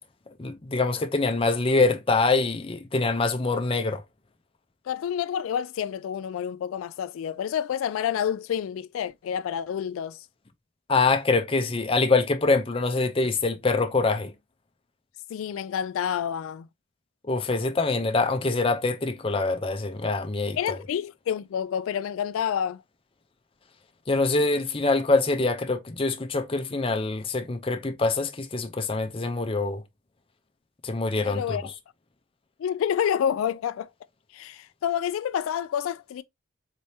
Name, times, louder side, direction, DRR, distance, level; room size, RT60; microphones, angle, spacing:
voice 1, 0.4-4.0 10.9-14.3 17.3-20.8 24.1-29.8 30.8-31.7, left 3 dB, 25° left, 0.6 m, -24 dB
voice 2, 4.9-10.3 15.3-16.7 20.6-22.8 31.2-31.7 32.6-33.9 34.3-36.2, left 8 dB, 85° left, 0.3 m, -28 dB
4.2 x 3.4 x 2.7 m
head